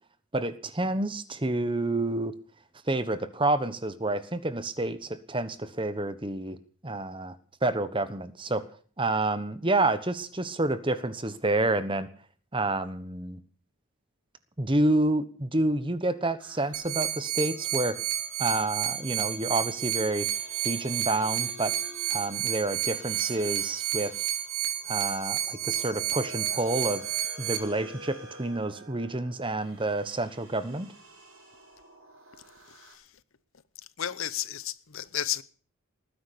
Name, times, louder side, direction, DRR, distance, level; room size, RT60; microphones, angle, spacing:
voice 1, 0.3-2.4 2.9-6.6 6.8-7.4 7.6-8.6 9.0-12.1 12.5-13.4 14.6-18.0 18.4-20.3 20.6-21.7 22.1-24.1 24.9-27.0 27.4-30.9, right 2 dB, 20° right, 1.1 m, -29 dB
sound 1, 16.4-32.9, right 1 dB, 60° right, 6.4 m, -50 dB
sound 2, 16.7-27.6, right 12 dB, 80° right, 2.7 m, -31 dB
voice 2, 32.7-33.1 34.0-35.4, left 11 dB, 60° left, 0.8 m, -33 dB
19.5 x 10.0 x 6.9 m
head